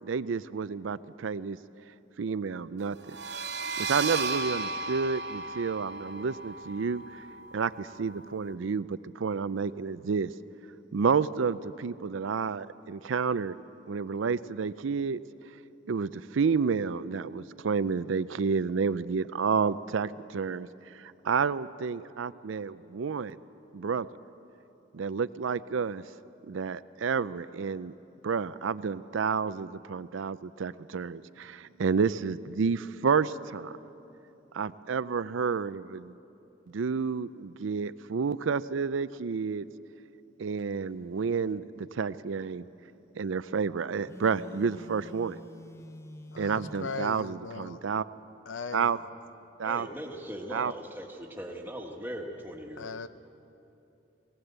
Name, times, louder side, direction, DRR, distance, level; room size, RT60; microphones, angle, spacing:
voice 1, 0.0-1.6 2.2-3.2 3.8-7.3 7.5-10.3 10.9-13.6 13.9-15.2 15.9-23.4 23.7-24.1 24.9-26.0 26.5-27.9 28.2-33.7 34.5-36.1 36.7-39.6 40.4-42.7 43.2-45.4 46.4-48.1 48.7-49.0 49.6-49.9 50.5-50.7, right 5 dB, 80° right, 15 dB, 0.5 m, -30 dB
sound 1, 3.0-8.5, right 3 dB, 60° right, 1.0 m, -35 dB
Telephone, 44.0-47.2, left 1 dB, 15° left, 0.4 m, -47 dB
voice 2, 46.3-47.8 48.5-49.0 52.8-53.1, left 4 dB, 80° left, 13 dB, 0.7 m, -38 dB
voice 3, 49.6-52.9, equal, 10° right, 1 dB, 1.5 m, -40 dB
19.0 x 17.5 x 8.1 m, 2.8 s
head